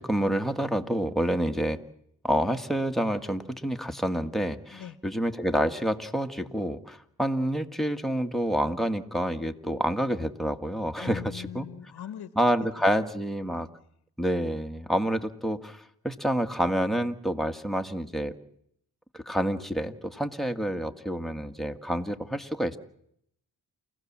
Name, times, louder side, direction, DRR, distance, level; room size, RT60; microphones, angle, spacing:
voice 1, 0.0-1.8 2.2-11.6 12.4-13.7 14.2-18.3 19.1-22.8, equal, ahead, 9 dB, 1.7 m, -28 dB
voice 2, 11.0-12.3 13.0-13.1, left 10 dB, 80° left, 15 dB, 1.1 m, -41 dB
29.0 x 15.5 x 7.4 m, 0.72 s
cardioid pair, 55°, 38 cm